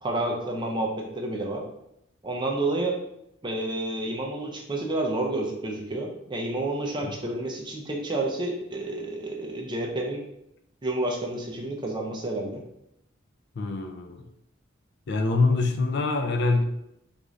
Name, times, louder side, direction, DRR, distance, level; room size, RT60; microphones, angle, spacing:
voice 1, 0.0-1.6 2.2-3.0 3.4-10.2 10.8-12.6, right 2 dB, 20° right, 1 dB, 0.4 m, -30 dB
voice 2, 13.6-14.2 15.1-16.6, left 3 dB, 55° left, 5 dB, 0.4 m, -25 dB
3.7 x 2.5 x 3.1 m, 0.81 s
head